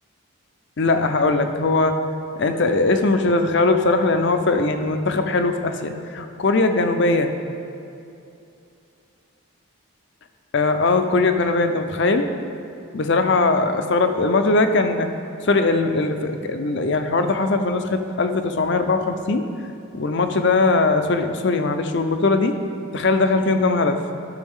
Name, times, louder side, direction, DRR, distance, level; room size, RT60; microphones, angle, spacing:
voice 1, 0.8-2.0 2.4-7.3 10.5-12.3 12.9-15.1 15.4-19.4 19.9-22.6 22.9-24.0, left 3 dB, 55° left, 7 dB, 0.5 m, -20 dB
13.0 x 6.3 x 3.6 m, 2.6 s
head